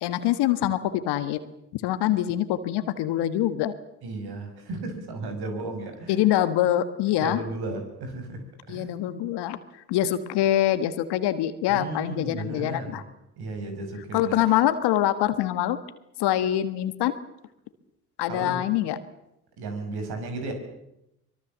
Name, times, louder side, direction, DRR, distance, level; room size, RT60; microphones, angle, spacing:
voice 1, 0.0-1.4 1.7-3.7 6.1-7.4 8.7-9.6 9.9-13.0 14.1-15.8 16.2-17.1 18.2-19.0, left 12 dB, 70° left, 11 dB, 1.6 m, -24 dB
voice 2, 4.0-6.4 7.2-8.4 8.7-8.9 11.7-13.0 13.4-14.3 18.3-18.6 19.6-20.5, right 2 dB, 65° right, 6 dB, 5.9 m, -34 dB
24.0 x 22.0 x 7.4 m, 0.85 s
hypercardioid pair, 45°, 42 cm